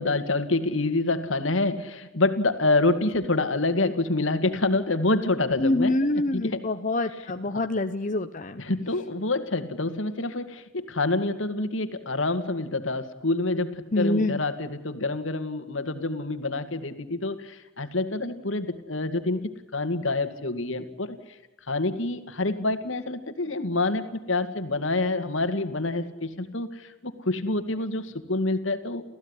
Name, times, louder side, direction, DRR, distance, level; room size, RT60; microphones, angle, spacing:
voice 1, 0.0-6.6 8.6-19.4 19.7-21.2 21.7-29.0, left 2 dB, 75° left, 9 dB, 2.3 m, -27 dB
voice 2, 5.6-8.6 13.9-14.4, left 2 dB, 40° left, 7 dB, 0.9 m, -26 dB
30.0 x 15.5 x 9.9 m, 1.0 s
head